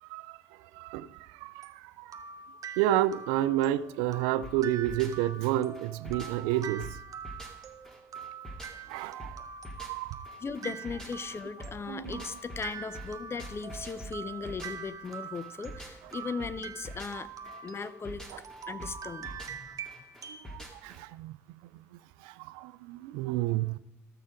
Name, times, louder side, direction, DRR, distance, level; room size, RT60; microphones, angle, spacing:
voice 1, 0.0-2.2 2.8-7.0 8.9-9.5 9.8-10.3 11.9-12.3 18.3-18.4 19.3-19.4 20.3-21.4 21.6-23.8, right 13 dB, 85° right, 0.3 m, -31 dB
sound 1, 1.6-20.5, right 6 dB, 50° right, 1.0 m, -45 dB
sound 2, 4.4-21.0, equal, 10° left, 2.1 m, -46 dB
voice 2, 10.4-17.3 17.6-18.2 18.7-19.7, left 5 dB, 35° left, 0.6 m, -38 dB
13.5 x 6.4 x 5.1 m
hypercardioid pair, 60°, 7 cm